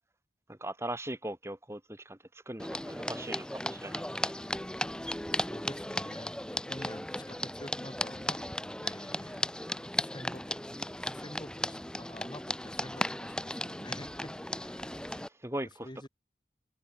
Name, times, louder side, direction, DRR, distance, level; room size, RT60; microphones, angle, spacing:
voice 1, 0.5-2.2 2.5-4.3 15.4-15.9, right 1 dB, 15° right, 3.6 m, -39 dB
sound 1, 2.6-15.3, left 1 dB, 5° left, 0.7 m, -36 dB
voice 2, 5.1-10.6 11.0-15.1 15.6-16.1, left 1 dB, 25° left, 6.9 m, -48 dB
open air
head